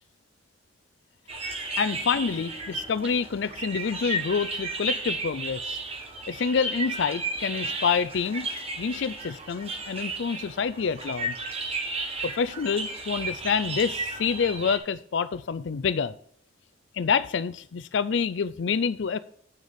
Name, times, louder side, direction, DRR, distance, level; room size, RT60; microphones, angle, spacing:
sound 1, 1.3-14.8, right 2 dB, 30° right, 1.2 m, -34 dB
voice 1, 1.8-5.8 6.3-8.5 8.8-11.3 12.2-16.2 16.9-19.2, left 6 dB, 65° left, 0.4 m, -27 dB
sound 2, 2.1-5.8, right 1 dB, 45° left, 1.5 m, -52 dB
8.9 x 6.4 x 5.1 m
head